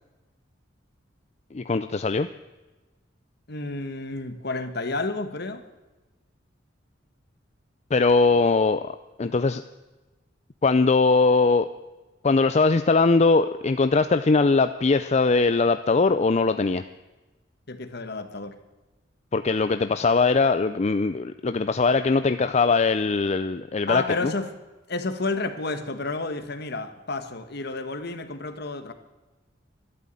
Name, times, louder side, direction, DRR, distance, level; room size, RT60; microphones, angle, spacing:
voice 1, 1.5-2.3 7.9-8.9 9.2-9.6 10.6-11.7 12.2-16.8 19.3-24.3, left 3 dB, 35° left, 11 dB, 0.5 m, -21 dB
voice 2, 3.5-5.6 17.7-18.5 23.9-24.5 24.9-28.9, left 3 dB, 60° left, 9 dB, 1.5 m, -30 dB
13.0 x 12.0 x 9.1 m, 1.1 s
head